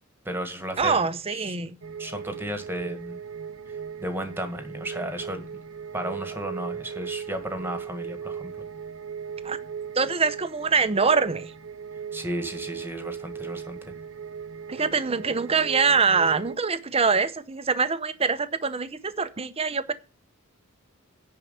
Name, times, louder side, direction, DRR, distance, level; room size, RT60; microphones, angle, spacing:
voice 1, 0.2-1.0 1.3-1.5 2.0-3.2 3.7-5.4 5.9-8.5 12.1-13.8, equal, 10° right, 1.7 m, -34 dB
voice 2, 0.8-1.7 9.4-9.6 10.0-11.5 14.7-19.9, right 5 dB, 25° right, 0.8 m, -24 dB
sound 1, 1.8-16.6, right 7 dB, 65° right, 0.8 m, -38 dB
10.5 x 4.8 x 8.0 m
head